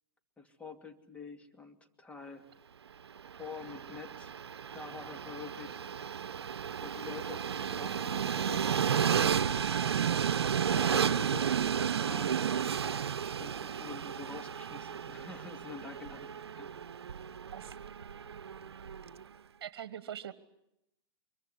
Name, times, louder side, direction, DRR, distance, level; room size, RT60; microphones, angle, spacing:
voice 1, 0.4-2.5 3.4-4.3 4.7-5.8 6.8-9.5 10.7-12.3 13.2-16.9, left 5 dB, 10° left, 5 dB, 2.6 m, -47 dB
Train, 3.2-19.2, right 8 dB, 85° right, 0.9 m, -33 dB
voice 2, 19.6-20.3, right 10 dB, 65° right, 13 dB, 1.4 m, -42 dB
25.0 x 23.0 x 8.2 m, 0.83 s
hypercardioid pair, 125°, 13 cm